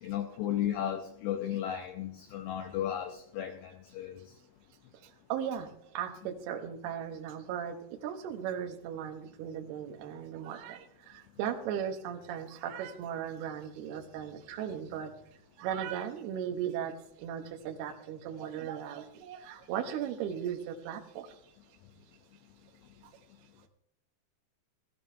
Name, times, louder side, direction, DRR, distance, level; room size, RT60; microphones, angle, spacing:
voice 1, 0.0-4.3, left 10 dB, 80° left, 5 dB, 2.2 m, -34 dB
voice 2, 5.3-5.7 5.9-7.8 8.0-15.1 15.6-16.9 17.2-21.4, right 9 dB, 70° right, 3 dB, 2.9 m, -37 dB
18.0 x 13.0 x 2.7 m, 0.74 s
omnidirectional pair, 5.2 m